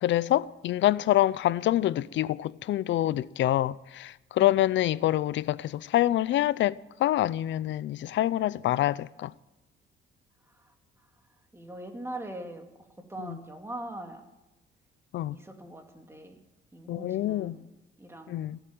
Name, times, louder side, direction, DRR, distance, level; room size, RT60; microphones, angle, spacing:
voice 1, 0.0-9.3 13.2-13.4 15.1-15.3 16.9-17.6 18.3-18.6, left 13 dB, 70° left, 0.5 m, -26 dB
voice 2, 11.5-12.7 13.1-14.2 15.3-16.4 16.7-17.7 18.0-18.4, right 1 dB, 15° right, 2.5 m, -41 dB
17.0 x 8.1 x 9.3 m
cardioid pair, 90°, 20 cm